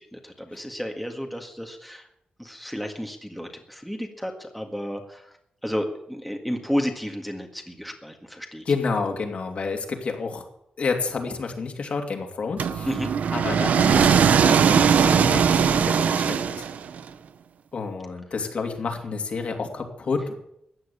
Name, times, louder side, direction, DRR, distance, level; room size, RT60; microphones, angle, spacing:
voice 1, 0.0-2.1 2.4-5.3 5.6-8.6 12.9-13.1, equal, ahead, 3 dB, 1.7 m, -32 dB
voice 2, 8.6-10.4 10.8-12.9 13.3-16.6 17.7-20.3, left 4 dB, 55° left, 3 dB, 2.7 m, -29 dB
sound 1, 12.6-17.0, right 7 dB, 80° right, 0.8 m, -20 dB
15.0 x 9.7 x 8.3 m, 0.76 s
wide cardioid pair, 135°, 3 cm